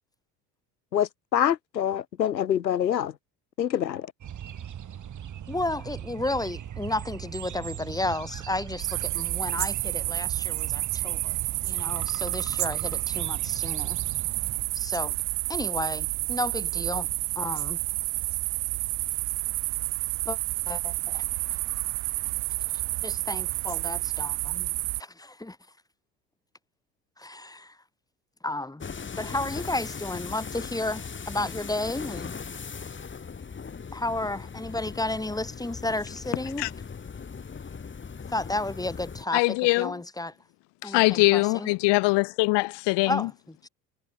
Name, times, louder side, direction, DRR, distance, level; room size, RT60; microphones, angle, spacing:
voice 1, 0.9-3.1 3.6-4.1, left 10 dB, 90° left, 0.7 m, -25 dB
sound 1, 4.2-14.6, right 9 dB, 35° right, 5.6 m, -39 dB
voice 2, 5.5-11.4 11.6-14.0 14.7-15.2 15.5-17.1 17.4-17.8 20.2-20.4 20.7-21.2 21.5-21.6 23.0-25.6 27.2-27.8 28.4-28.8 29.2-32.3 33.9-36.7 38.3-40.3 40.8-41.7 43.0-43.7, left 2 dB, 5° left, 4.6 m, -32 dB
sound 2, 8.8-25.0, right 25 dB, 55° right, 6.3 m, -30 dB
sound 3, 28.8-39.3, left 5 dB, 25° left, 4.2 m, -39 dB
voice 3, 39.3-39.9 40.8-43.2, left 25 dB, 55° left, 2.9 m, -22 dB
figure-of-eight pair, 70°, 49 cm